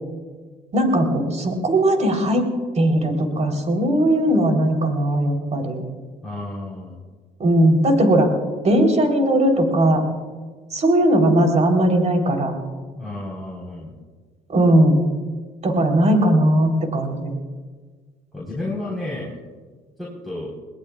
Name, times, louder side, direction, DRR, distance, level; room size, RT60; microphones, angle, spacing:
voice 1, 0.7-2.5 2.8-5.8 7.4-8.3 8.6-10.0 10.7-12.5 14.5-15.1 15.6-17.3, right 1 dB, 45° right, 3 dB, 3.7 m, -18 dB
voice 2, 6.2-7.0 12.9-13.9 18.3-19.4 20.0-20.5, left 2 dB, ahead, -4 dB, 4.2 m, -31 dB
21.5 x 18.5 x 2.4 m, 1.5 s
supercardioid pair, 65°, 17 cm